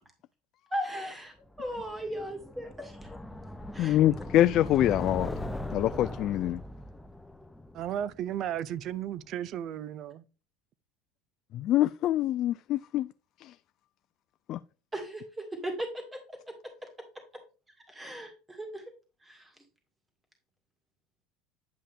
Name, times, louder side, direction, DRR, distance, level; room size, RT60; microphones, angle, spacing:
voice 1, 0.7-3.1 3.7-4.0 14.9-15.9 17.9-18.8 19.2-19.5, equal, 15° right, 2.2 m, -37 dB
sound 1, 1.5-8.6, left 1 dB, 5° left, 0.7 m, -40 dB
voice 2, 3.8-6.6 11.5-13.1 13.4-13.5 14.5-14.6, left 13 dB, 50° left, 0.3 m, -25 dB
voice 3, 7.7-10.2, right 10 dB, 50° right, 0.6 m, -34 dB
10.0 x 5.5 x 3.5 m
supercardioid pair, 115°, 0 cm